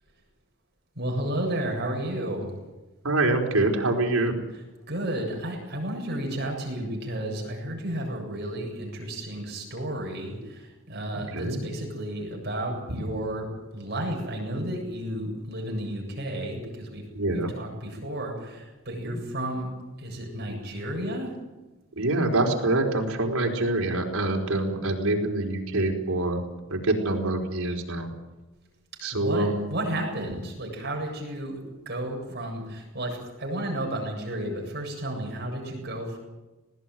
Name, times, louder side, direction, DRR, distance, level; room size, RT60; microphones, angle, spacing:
voice 1, 1.0-2.5 4.5-17.0 17.3-19.7 20.0-21.3 29.1-36.2, right 1 dB, 50° right, 1 dB, 7.8 m, -32 dB
voice 2, 3.0-4.4 11.1-11.6 17.1-17.5 19.0-19.1 22.0-26.4 26.7-28.1 29.0-29.7 35.7-35.8, right 2 dB, 80° right, 1 dB, 4.4 m, -25 dB
19.5 x 17.5 x 9.3 m, 1.1 s
head